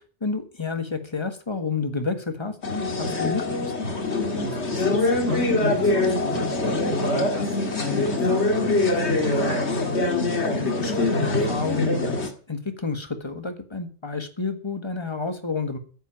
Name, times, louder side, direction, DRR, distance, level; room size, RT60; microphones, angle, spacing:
voice 1, 0.2-3.7 10.6-12.2 12.5-15.8, left 4 dB, 25° left, 8 dB, 1.6 m, -30 dB
sound 1, 2.6-12.3, left 2 dB, 65° left, 2.3 m, -24 dB
voice 2, 4.3-9.7, left 1 dB, 75° right, -5 dB, 4.0 m, -34 dB
10.0 x 9.0 x 8.9 m, 0.43 s
omnidirectional pair, 1.2 m